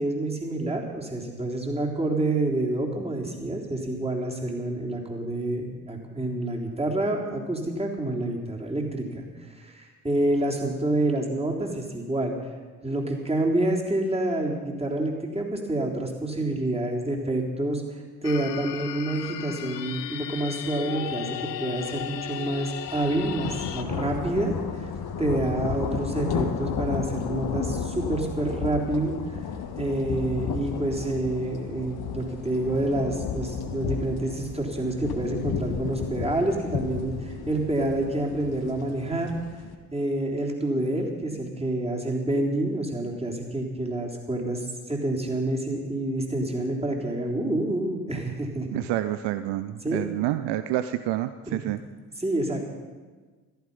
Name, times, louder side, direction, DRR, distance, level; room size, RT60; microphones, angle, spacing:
voice 1, 0.0-12.3 12.8-24.5 24.8-24.9 25.2-29.4 29.8-39.3 39.9-48.8 49.8-50.0 51.5-51.6 52.2-52.7, right 1 dB, 10° right, -1 dB, 3.6 m, -28 dB
sound 1, 18.2-23.8, left 12 dB, 85° left, 0.6 m, -35 dB
sound 2, 21.9-22.1 22.5-39.8, left 7 dB, 50° left, 1.6 m, -33 dB
voice 2, 48.7-51.8, right 14 dB, 60° right, 12 dB, 0.7 m, -28 dB
15.0 x 14.0 x 5.5 m, 1.4 s
figure-of-eight pair, 45°, 48 cm